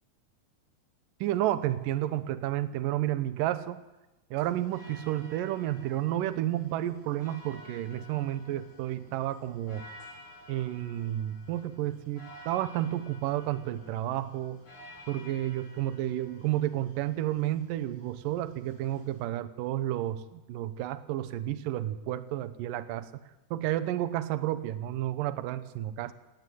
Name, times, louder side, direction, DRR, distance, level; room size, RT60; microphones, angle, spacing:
voice 1, 1.2-3.8 4.3-9.8 10.5-14.6 15.1-23.1 23.5-26.1, right 13 dB, 70° right, 12 dB, 2.3 m, -31 dB
sound 1, 4.4-19.2, left 1 dB, 60° left, 8.9 m, -53 dB
18.5 x 17.5 x 8.0 m, 1.0 s
omnidirectional pair, 4.7 m